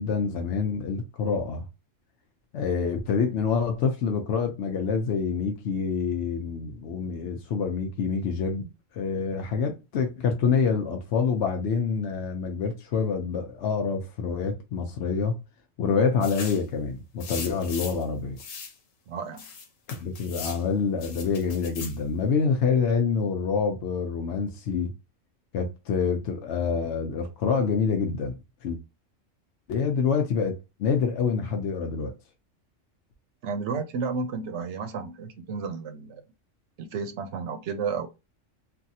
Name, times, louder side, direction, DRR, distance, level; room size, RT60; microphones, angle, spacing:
voice 1, 0.0-1.6 2.5-8.7 8.9-15.4 15.8-18.4 19.9-24.9 25.5-28.8 29.7-32.1, left 5 dB, 65° left, 0.8 m, -26 dB
sound 1, 16.2-16.7 17.2-18.0 18.4-18.7 19.4-20.6 21.0-22.0, left 6 dB, 90° left, 1.1 m, -39 dB
voice 2, 19.1-19.5 33.4-36.2 36.8-38.1, right 5 dB, 70° right, 0.9 m, -32 dB
3.4 x 2.3 x 2.6 m
omnidirectional pair, 1.3 m